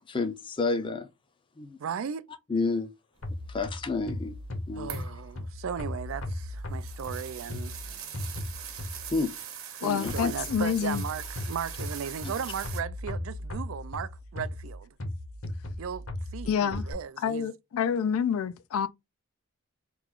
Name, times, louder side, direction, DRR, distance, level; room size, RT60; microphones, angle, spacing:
voice 1, 0.1-1.1 1.6-1.8 2.5-2.9 3.5-4.3 4.7-5.1 9.1-9.3 10.0-10.3, left 3 dB, 25° left, 0.5 m, -30 dB
voice 2, 1.8-2.3 4.8-7.8 9.8-14.9 15.8-16.1 16.3-17.5, right 7 dB, 70° right, 0.4 m, -36 dB
sound 1, 3.2-9.3 10.1-16.9, left 1 dB, 65° left, 1.0 m, -37 dB
sound 2, 4.9-5.2 6.1-12.8, right 9 dB, 90° right, 0.9 m, -42 dB
voice 3, 9.8-11.0 16.5-16.8 17.2-18.9, left 7 dB, 85° left, 0.3 m, -28 dB
3.0 x 2.4 x 3.6 m
head